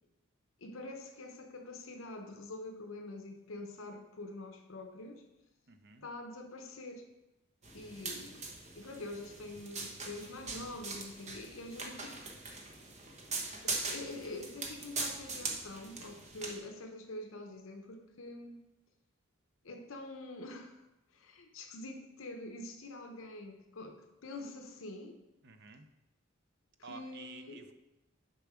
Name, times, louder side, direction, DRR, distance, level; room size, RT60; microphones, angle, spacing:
voice 1, 0.6-5.2 6.0-7.0 7.7-12.2 13.6-18.6 19.6-20.8 21.1-25.2 26.9-27.6, left 2 dB, 70° left, 5 dB, 0.8 m, -45 dB
voice 2, 5.7-6.1 25.4-25.9 26.8-27.7, right 5 dB, 50° right, 8 dB, 0.6 m, -51 dB
sound 1, 7.6-16.6, right 3 dB, 35° right, 1.0 m, -41 dB
6.9 x 5.6 x 4.9 m, 0.97 s
head